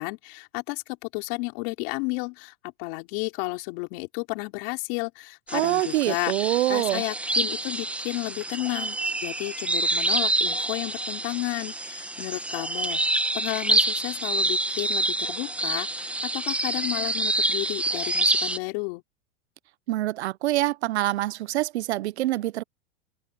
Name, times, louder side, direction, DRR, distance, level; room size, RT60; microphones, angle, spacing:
voice 1, 0.0-6.3 6.7-19.0, left 28 dB, 55° left, 5.0 m, -32 dB
sound 1, 5.5-18.6, right 2 dB, 5° right, 1.3 m, -27 dB
voice 2, 5.5-7.0 19.9-22.6, right 16 dB, 85° right, 0.6 m, -25 dB
supercardioid pair, 130°, 32 cm